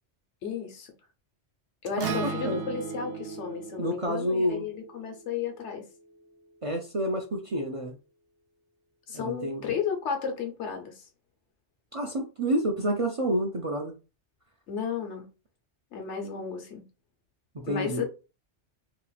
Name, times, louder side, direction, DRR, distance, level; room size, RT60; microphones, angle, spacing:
voice 1, 0.4-0.9 1.8-5.8 9.1-11.1 14.7-15.3 15.9-16.8 17.7-18.0, left 6 dB, 80° left, 1.1 m, -33 dB
voice 2, 2.0-2.6 3.8-4.7 6.6-7.9 9.1-9.6 11.9-13.9 17.5-18.0, right 1 dB, 45° right, 0.5 m, -29 dB
Acoustic guitar, 2.0-6.2, right 5 dB, 80° right, 0.9 m, -38 dB
2.9 x 2.4 x 3.9 m
omnidirectional pair, 1.2 m